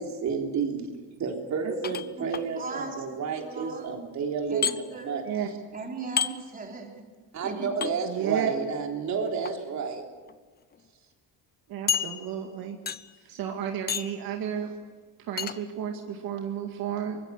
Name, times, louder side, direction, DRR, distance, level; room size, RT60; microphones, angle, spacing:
voice 1, 0.0-5.5 7.3-10.0, right 5 dB, 45° right, 2 dB, 3.6 m, -31 dB
voice 2, 1.6-2.0 5.3-5.5 8.1-8.5 11.7-12.8 13.2-14.7 15.2-17.2, right 9 dB, 65° right, 3 dB, 2.2 m, -32 dB
sound 1, 1.8-2.5 4.6-4.8 6.2-6.3 7.8-7.9 9.3-9.5 10.3-10.4 10.7-10.8 11.9-12.5 12.9-13.2 13.9-14.2 15.4-15.6, left 8 dB, 25° left, 0.7 m, -29 dB
voice 3, 2.6-3.9 4.5-5.2 5.7-7.0 7.4-7.9, right 3 dB, 20° right, 1 dB, 4.1 m, -38 dB
24.0 x 21.0 x 6.6 m, 1.5 s
cardioid pair, 140°, 38 cm